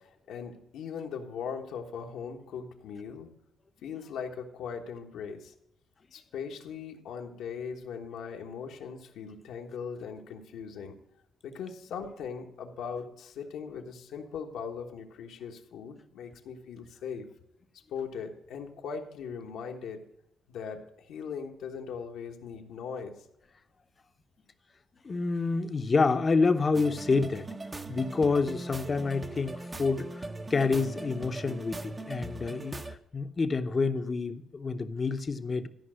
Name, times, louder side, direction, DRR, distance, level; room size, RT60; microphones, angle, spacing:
voice 1, 0.0-3.3 3.8-5.5 6.1-11.0 11.4-17.3 17.9-20.0 20.5-23.2, left 6 dB, 80° left, 3 dB, 1.3 m, -39 dB
voice 2, 25.0-27.5 27.9-35.7, left 4 dB, 35° left, 10 dB, 0.8 m, -28 dB
sound 1, 26.7-33.0, right 2 dB, 25° right, 0.8 m, -40 dB
13.0 x 5.3 x 6.3 m, 0.81 s
cardioid pair, 90°, 0 cm